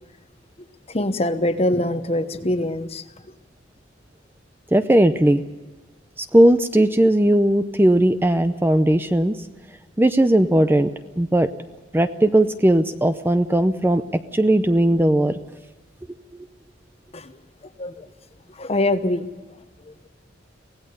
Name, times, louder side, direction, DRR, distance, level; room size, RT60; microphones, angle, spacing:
voice 1, 0.6-3.0 17.1-17.3 17.8-18.1 18.5-19.3 19.8-19.9, left 1 dB, 35° left, 11 dB, 1.0 m, -24 dB
voice 2, 4.7-5.4 6.2-9.4 10.0-10.9 11.2-11.5 11.9-15.4, right 1 dB, 10° right, 10 dB, 0.6 m, -18 dB
24.5 x 17.5 x 6.8 m, 1.2 s
head